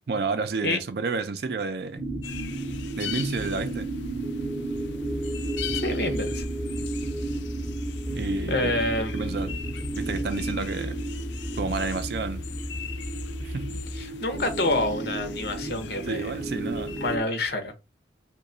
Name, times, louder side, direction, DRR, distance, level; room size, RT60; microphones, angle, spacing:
voice 1, 0.1-2.0 3.0-3.9 8.2-8.7 9.1-9.6 10.0-11.0 11.6-12.5 13.4-13.8 16.1-16.9, right 4 dB, 60° right, 0.4 m, -30 dB
sound 1, 2.0-17.2, right 2 dB, 15° right, 0.7 m, -33 dB
sound 2, 2.2-17.2, left 10 dB, 80° left, 0.3 m, -42 dB
sound 3, 5.0-14.0, equal, 30° left, 0.5 m, -35 dB
voice 2, 5.8-6.4 8.5-9.2 13.9-16.4 17.0-17.9, left 2 dB, 60° left, 0.7 m, -27 dB
3.0 x 2.2 x 3.8 m
head